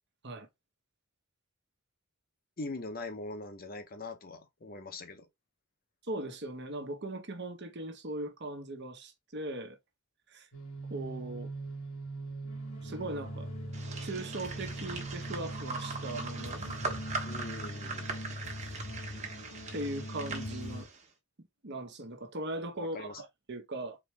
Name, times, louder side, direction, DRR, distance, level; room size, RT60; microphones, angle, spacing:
voice 1, 2.6-5.3 17.2-18.1 22.9-23.2, left 2 dB, 45° left, 0.8 m, -42 dB
voice 2, 6.0-9.8 10.3-10.5 10.9-11.5 12.8-13.5 14.0-16.8 19.7-20.9 21.6-24.0, right 1 dB, 55° right, 1.1 m, -39 dB
sound 1, 10.5-20.8, right 1 dB, 75° left, 1.4 m, -41 dB
sound 2, 13.7-21.0, right 4 dB, 35° right, 1.2 m, -41 dB
4.2 x 3.2 x 3.3 m
head